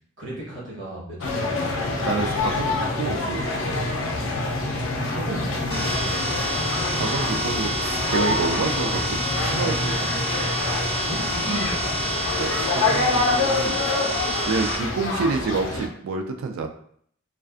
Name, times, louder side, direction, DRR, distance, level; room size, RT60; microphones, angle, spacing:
voice 1, 0.2-1.9 4.9-6.6 7.1-7.2 11.0-12.1 14.5-14.6, right 1 dB, 65° right, -5 dB, 1.1 m, -34 dB
sound 1, 1.2-15.9, left 2 dB, 80° left, 0.4 m, -26 dB
voice 2, 2.0-3.5 6.9-10.3 12.4-13.8 14.5-16.7, right 4 dB, 80° right, 4 dB, 0.3 m, -28 dB
sound 2, 5.7-14.8, equal, 30° left, 0.5 m, -28 dB
2.4 x 2.3 x 2.4 m, 0.63 s
head